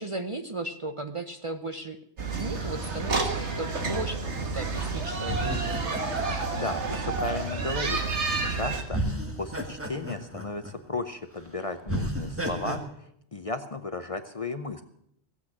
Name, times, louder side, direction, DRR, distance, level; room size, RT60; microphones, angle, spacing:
voice 1, 0.0-2.0 2.3-5.8, right 2 dB, 35° right, 8 dB, 0.6 m, -36 dB
sound 1, 2.2-8.8, right 3 dB, 85° right, 1.9 m, -30 dB
sound 2, 2.5-4.3 5.2-7.8 8.4-8.6 8.9-11.0 11.3-11.4 11.9-12.8, right 1 dB, 10° right, 1.6 m, -34 dB
voice 2, 6.5-14.8, left 3 dB, 35° left, 9 dB, 0.6 m, -35 dB
16.0 x 8.2 x 7.2 m, 0.72 s
omnidirectional pair, 1.1 m